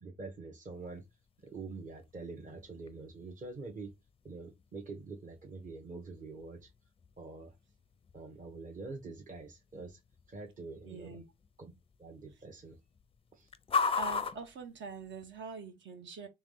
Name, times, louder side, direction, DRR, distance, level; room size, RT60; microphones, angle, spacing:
voice 1, 0.0-1.0 1.4-3.9 4.2-6.7 7.2-7.6 8.1-10.0 10.3-11.2 11.6-11.7 12.0-12.8 13.3-13.5, right 3 dB, 40° right, 1.1 m, -45 dB
sound 1, 0.7-15.5, left 5 dB, 30° left, 0.4 m, -42 dB
voice 2, 10.8-11.2 13.9-16.3, right 5 dB, 70° right, 1.4 m, -44 dB
3.5 x 3.1 x 3.8 m
cardioid pair, 90°, 20 cm